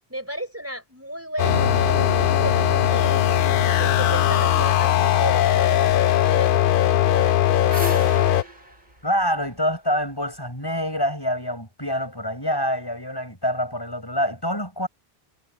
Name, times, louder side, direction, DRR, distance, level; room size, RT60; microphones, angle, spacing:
voice 1, 0.1-3.2 3.8-8.5, right 1 dB, 15° right, 4.1 m, -34 dB
sound 1, 1.4-8.4, left 11 dB, 60° left, 0.7 m, -19 dB
sound 2, 1.4-7.7, right 2 dB, 70° right, 7.2 m, -33 dB
sound 3, 7.7-10.4, right 2 dB, 45° right, 8.2 m, -37 dB
voice 2, 9.0-14.9, equal, 20° left, 7.8 m, -26 dB
omnidirectional pair, 1.1 m